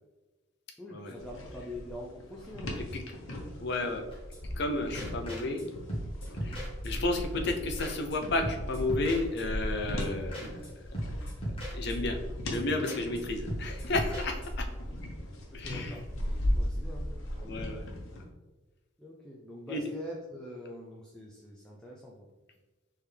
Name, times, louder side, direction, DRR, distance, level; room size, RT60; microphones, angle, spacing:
voice 1, 0.8-3.6 6.4-6.7 15.5-16.0 16.5-17.7 19.0-22.1, left 1 dB, 5° left, -4 dB, 0.4 m, -45 dB
sound 1, 1.2-18.2, left 1 dB, 85° left, 0.9 m, -37 dB
voice 2, 3.6-4.0 4.6-5.6 6.4-10.9 11.7-12.2 12.4-14.7 15.5-16.0 17.4-17.8 18.1-18.2 19.7-19.9, left 2 dB, 55° left, 4 dB, 0.6 m, -32 dB
sound 2, 4.1-4.7 4.9-5.6 5.9-7.2 7.5-7.6 7.8-8.2 8.4-9.7 10.0-10.1 10.3-10.7 10.9-12.2 12.5-12.6 12.8-13.2 13.5-14.7, equal, 25° left, 1.3 m, -38 dB
4.5 x 3.4 x 3.3 m, 1.2 s
head